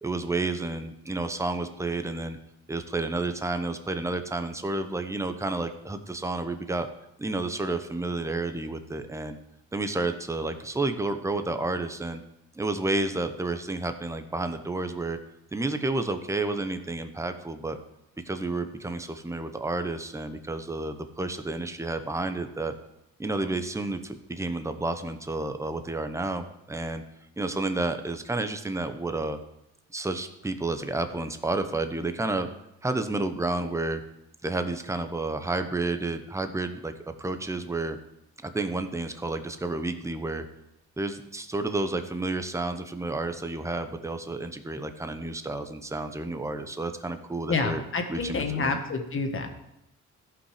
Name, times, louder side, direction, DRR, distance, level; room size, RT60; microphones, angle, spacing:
voice 1, 0.0-2.4 2.7-6.9 7.2-9.4 9.7-12.2 12.5-15.2 15.5-17.8 18.3-22.7 23.2-27.0 27.4-29.4 29.9-32.5 32.8-34.0 34.4-36.9 37.2-38.0 38.4-40.4 41.0-47.8 48.1-48.8, right 2 dB, 10° right, 8 dB, 0.9 m, -30 dB
voice 2, 47.5-49.5, left 4 dB, 45° left, 5 dB, 1.7 m, -28 dB
14.5 x 5.7 x 5.0 m, 0.85 s
cardioid pair, 90°, 30 cm